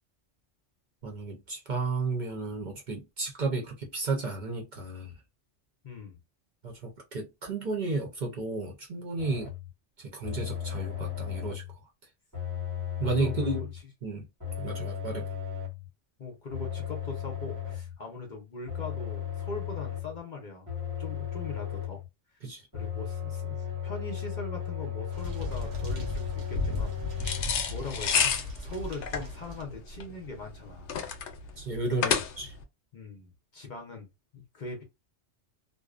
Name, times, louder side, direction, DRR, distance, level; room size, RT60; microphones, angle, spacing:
voice 1, 1.0-5.1 6.6-9.5 10.0-11.6 13.0-13.7 14.0-14.3 14.6-15.2 22.4-22.6 31.6-32.5, right 3 dB, 50° right, 0.7 m, -33 dB
voice 2, 5.8-6.2 13.0-13.8 16.2-20.7 21.0-22.0 22.7-30.9 31.2-31.3 31.9-32.2 32.9-34.1 34.3-34.8, left 3 dB, 50° left, 0.7 m, -41 dB
sound 1, 9.2-9.7 10.2-11.7 12.3-13.8 14.4-15.9 16.5-18.0 18.7-20.2 20.7-22.1 22.7-27.4, left 9 dB, 20° right, 0.8 m, -35 dB
sound 2, 25.1-29.6, left 2 dB, 85° right, 1.1 m, -36 dB
sound 3, 27.2-32.6, left 7 dB, 75° left, 0.9 m, -30 dB
2.6 x 2.0 x 2.4 m
omnidirectional pair, 1.2 m